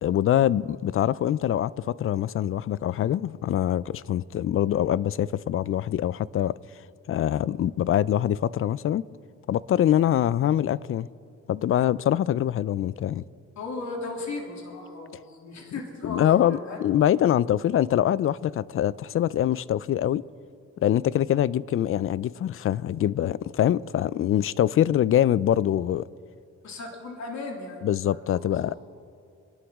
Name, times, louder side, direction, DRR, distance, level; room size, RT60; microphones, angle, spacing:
voice 1, 0.0-6.5 7.1-9.0 9.5-11.1 11.5-13.2 16.0-20.2 20.8-26.1 27.8-28.7, left 11 dB, 45° left, 0.4 m, -24 dB
voice 2, 13.6-16.8 26.6-28.8, left 3 dB, 65° left, 2.7 m, -36 dB
27.0 x 11.0 x 3.6 m
cardioid pair, 90°, 30 cm